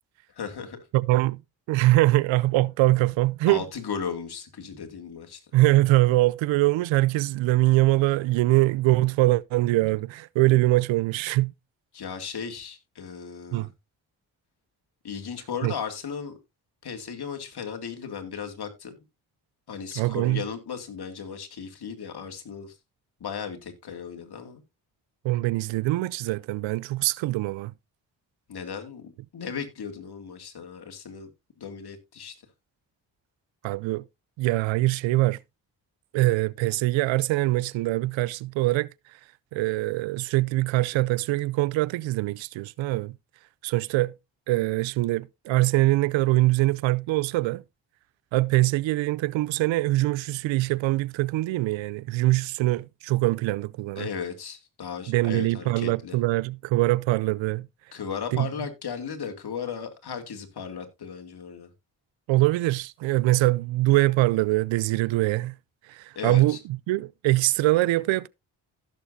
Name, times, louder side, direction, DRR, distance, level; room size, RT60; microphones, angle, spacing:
voice 1, 0.3-0.8 3.5-5.4 11.9-13.7 15.0-16.4 16.8-18.9 19.7-22.7 23.2-24.6 28.5-31.3 31.6-32.3 54.0-56.2 57.9-61.7 66.2-66.6, left 6 dB, 60° left, 2.4 m, -36 dB
voice 2, 0.9-1.4 1.7-3.7 5.5-11.5 13.5-13.7 15.6-15.7 20.0-20.4 25.2-27.7 33.6-34.0 34.4-35.4 36.1-38.9 39.5-43.2 43.6-44.1 44.5-47.6 48.3-54.1 55.1-57.7 58.3-58.5 62.3-65.5 65.9-68.3, right 18 dB, 80° right, 0.6 m, -23 dB
15.5 x 6.8 x 2.7 m
supercardioid pair, 50°, 45 cm